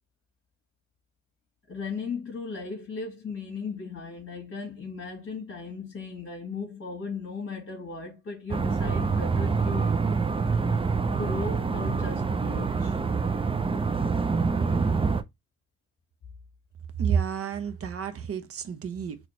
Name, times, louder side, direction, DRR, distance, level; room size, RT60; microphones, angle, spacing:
voice 1, 1.7-9.9 11.1-13.0, left 4 dB, 45° left, 1.6 m, -36 dB
sound 1, 8.5-15.2, right 4 dB, 20° right, 0.5 m, -26 dB
voice 2, 17.0-19.2, right 7 dB, 50° right, 0.8 m, -29 dB
4.2 x 3.1 x 3.1 m
cardioid pair, 90°, 30 cm